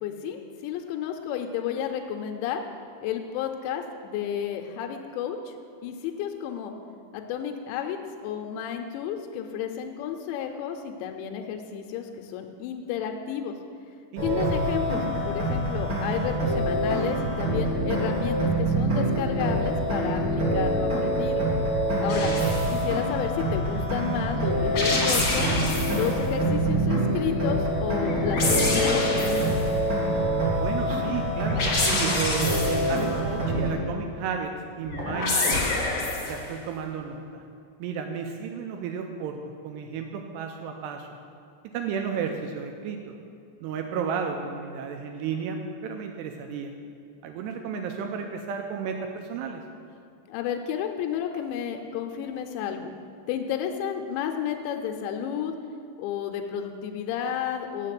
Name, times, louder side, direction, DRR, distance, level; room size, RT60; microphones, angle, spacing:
voice 1, 0.0-2.6 3.0-5.6 5.8-6.7 7.1-13.5 14.2-21.5 22.0-22.3 22.7-25.5 25.9-29.7 50.3-52.9 53.3-55.6 56.0-57.9, left 9 dB, 85° left, 4 dB, 2.8 m, -31 dB
voice 2, 14.1-14.5 21.9-22.5 30.6-34.5 34.8-35.7 36.3-37.4 37.8-39.4 39.6-41.1 41.7-43.0 43.6-46.7 47.2-49.6, right 6 dB, 80° right, 4 dB, 2.5 m, -33 dB
sound 1, 14.2-33.7, right 1 dB, 55° right, 1.1 m, -26 dB
sound 2, 22.1-22.8 24.6-26.1 28.0-29.7 31.4-33.0 34.8-36.5, left 2 dB, 55° left, 1.5 m, -27 dB
7.8 x 6.4 x 7.5 m, 2.5 s
omnidirectional pair, 5.2 m